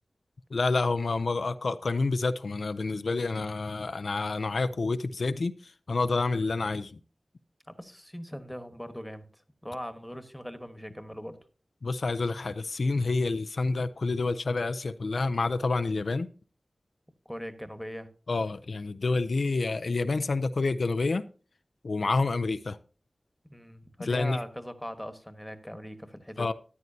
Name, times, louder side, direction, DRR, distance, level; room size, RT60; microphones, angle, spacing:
voice 1, 0.5-7.0 11.8-16.3 18.3-21.3 21.8-22.8 24.0-24.4 26.4-26.5, left 3 dB, 75° left, 0.5 m, -28 dB
voice 2, 7.7-11.4 17.2-18.1 23.5-26.5, equal, 5° left, 1.3 m, -40 dB
13.5 x 9.5 x 2.7 m
wide cardioid pair, 65°, 0 cm